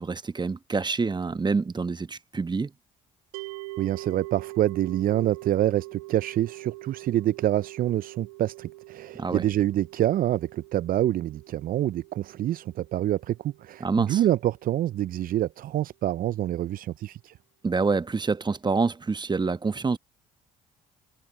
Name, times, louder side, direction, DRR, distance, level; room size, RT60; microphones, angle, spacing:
voice 1, 0.0-2.7 9.2-9.4 13.8-14.2 17.6-20.0, right 4 dB, 25° right, 1.1 m, -26 dB
sound 1, 3.3-14.5, right 21 dB, 85° right, 2.9 m, -43 dB
voice 2, 3.8-17.3, right 13 dB, 50° right, 0.5 m, -26 dB
hypercardioid pair, 55°, 18 cm